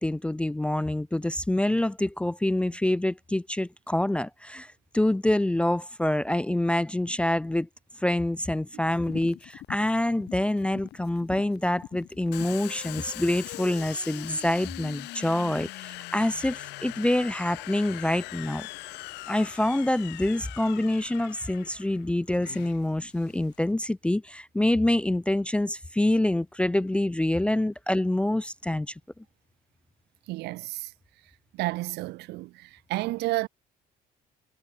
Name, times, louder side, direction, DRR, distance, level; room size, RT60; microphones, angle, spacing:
voice 1, 0.0-7.7 8.0-18.7 19.3-28.9, left 1 dB, 5° left, 0.3 m, -26 dB
sound 1, 8.9-13.7, left 14 dB, 70° left, 4.4 m, -44 dB
Domestic sounds home sounds, 12.3-23.7, left 20 dB, 85° left, 1.9 m, -41 dB
voice 2, 30.3-30.9 31.6-33.5, right 19 dB, 85° right, 0.8 m, -31 dB
cardioid pair, 110°, 17 cm